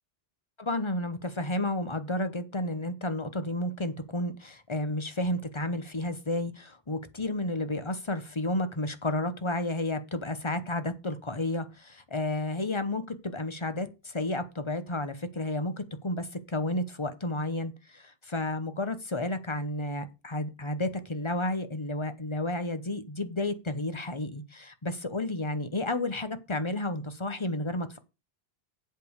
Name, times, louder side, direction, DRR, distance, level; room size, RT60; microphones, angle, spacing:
voice 1, 0.6-28.0, left 1 dB, 30° left, 1.0 m, -32 dB
8.0 x 5.1 x 6.5 m
omnidirectional pair, 1.1 m